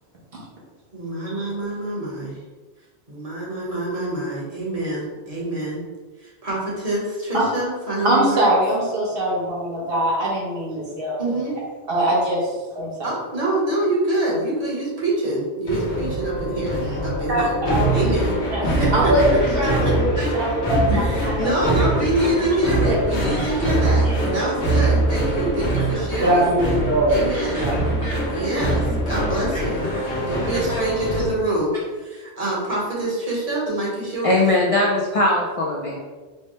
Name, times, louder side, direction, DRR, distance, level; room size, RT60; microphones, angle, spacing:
voice 1, 0.9-2.4 3.1-5.8 6.2-8.5 11.2-11.5 13.0-17.5 17.9-18.4 18.8-19.1 19.6-19.9 20.9-26.5 27.1-27.7 28.2-29.9 30.3-31.7 31.9-34.4, right 1 dB, 35° right, -5 dB, 1.1 m, -26 dB
voice 2, 8.0-11.3 11.9-13.1 16.8-17.0 17.3-18.0 18.5-18.6 18.9-21.5 22.8-23.4 24.2-24.4 26.2-27.8, right 1 dB, 60° right, -5 dB, 1.1 m, -22 dB
sound 1, 15.7-31.3, right 1 dB, 90° left, 1.1 m, -23 dB
voice 3, 23.3-24.2 24.8-24.9 25.7-26.0 27.5-28.7 29.5-29.6 29.9-30.1 30.5-30.8 34.2-36.0, left 2 dB, 60° left, -2 dB, 0.3 m, -24 dB
4.4 x 2.1 x 3.0 m, 1.3 s
omnidirectional pair, 1.2 m